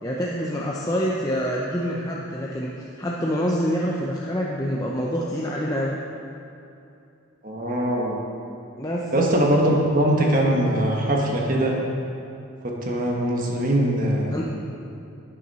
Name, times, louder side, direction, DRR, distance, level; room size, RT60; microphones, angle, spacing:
voice 1, 0.0-6.0 8.8-9.1 14.3-14.4, equal, 15° left, -3 dB, 0.7 m, -26 dB
voice 2, 7.4-8.2 9.1-11.8 12.6-14.4, right 1 dB, 40° right, -1 dB, 1.3 m, -22 dB
12.0 x 9.5 x 4.2 m, 2.7 s
head